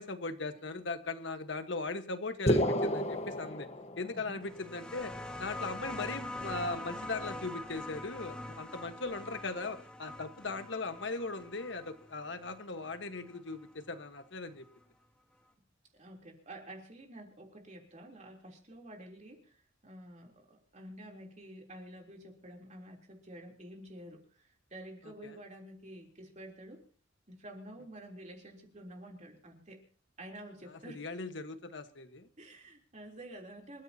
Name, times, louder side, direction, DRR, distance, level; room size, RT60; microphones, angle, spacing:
voice 1, 0.0-3.7 4.0-5.1 5.4-14.7 25.0-25.4 30.7-32.3, left 3 dB, 65° left, 9 dB, 1.5 m, -39 dB
sound 1, 2.5-4.4, equal, 35° left, 1.3 m, -30 dB
voice 2, 4.1-4.4 15.9-26.8 27.3-29.8 30.2-31.0 32.4-33.8, right 1 dB, 35° right, 1 dB, 3.5 m, -49 dB
sound 2, 4.4-13.7 14.8-14.9, left 1 dB, 5° left, 1.8 m, -44 dB
27.0 x 14.0 x 2.9 m, 0.41 s
head